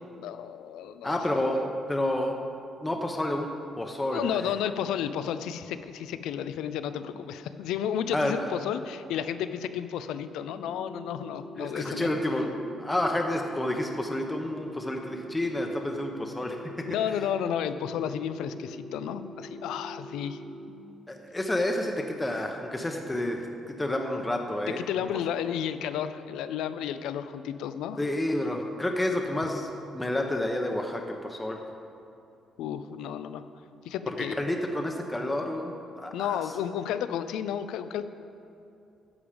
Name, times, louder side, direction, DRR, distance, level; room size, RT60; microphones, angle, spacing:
voice 1, 0.1-1.2 4.1-12.1 16.9-20.4 24.8-28.0 32.6-33.4 33.8-34.4 36.1-38.0, left 9 dB, 90° left, 11 dB, 0.4 m, -32 dB
voice 2, 1.0-1.6 1.9-2.4 2.8-3.5 3.8-4.5 8.1-8.5 11.6-17.2 21.1-24.8 28.0-31.6 34.1-36.4, left 1 dB, 15° left, 2 dB, 0.8 m, -30 dB
sound 1, 10.7-20.7, equal, 35° left, 1.2 m, -44 dB
11.0 x 7.1 x 5.0 m, 2.6 s
cardioid pair, 90°, 0 cm